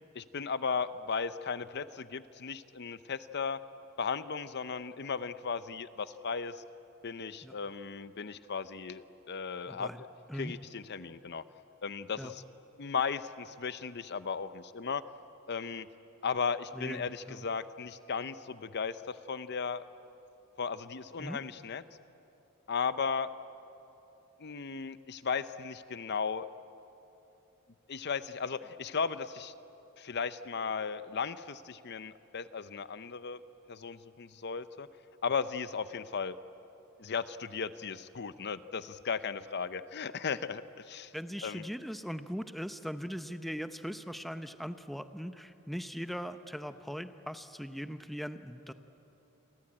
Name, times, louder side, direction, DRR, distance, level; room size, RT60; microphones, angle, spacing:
voice 1, 0.1-3.6 4.0-6.6 7.0-10.1 10.3-11.4 11.8-12.4 12.8-15.0 15.5-15.9 16.2-19.8 20.6-21.8 22.7-23.3 24.4-26.5 27.9-29.5 30.0-33.4 33.7-34.9 35.2-36.4 37.0-41.1 41.4-41.6, left 5 dB, 50° left, 13 dB, 0.7 m, -36 dB
voice 2, 9.7-10.0 10.3-10.5 12.2-12.3 16.7-17.4 21.2-21.4 41.1-48.7, equal, ahead, 9 dB, 0.7 m, -40 dB
29.0 x 22.5 x 8.8 m, 2.9 s
head